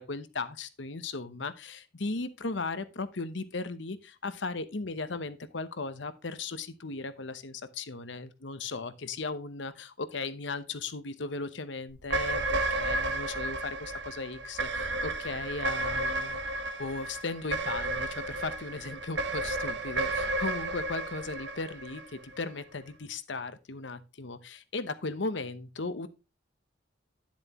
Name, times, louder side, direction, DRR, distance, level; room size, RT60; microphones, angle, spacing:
voice 1, 0.0-16.4 16.8-26.1, left 3 dB, 70° left, 0.9 m, -37 dB
sound 1, 12.0-22.5, right 2 dB, 60° right, 1.2 m, -32 dB
10.5 x 7.3 x 3.0 m
head